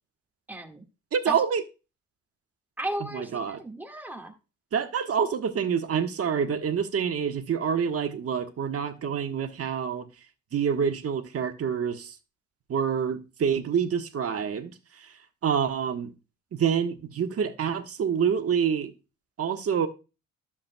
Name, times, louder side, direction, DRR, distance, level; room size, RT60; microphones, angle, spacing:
voice 1, 0.5-0.8 1.3-1.4 2.8-4.3, right 1 dB, 5° right, 1.8 m, -35 dB
voice 2, 1.1-1.6 3.0-3.6 4.7-10.0 10.5-12.1 12.7-15.1 15.4-16.1 16.5-18.9 19.4-19.9, right 7 dB, 50° right, 1.4 m, -27 dB
11.5 x 7.3 x 2.3 m
cardioid pair, 90°, 30 cm